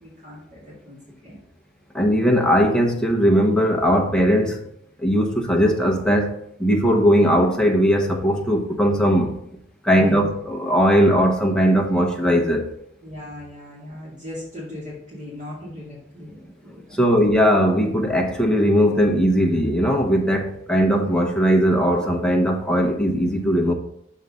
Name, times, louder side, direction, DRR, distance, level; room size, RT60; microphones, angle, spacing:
voice 1, 0.0-1.0 1.2-1.4 9.9-10.3 13.0-17.2, left 1 dB, 40° right, -7 dB, 2.1 m, -38 dB
voice 2, 1.9-4.6 5.0-9.4 9.8-12.7 17.0-23.7, equal, 5° left, 1 dB, 0.8 m, -19 dB
6.4 x 5.4 x 3.6 m, 0.74 s
head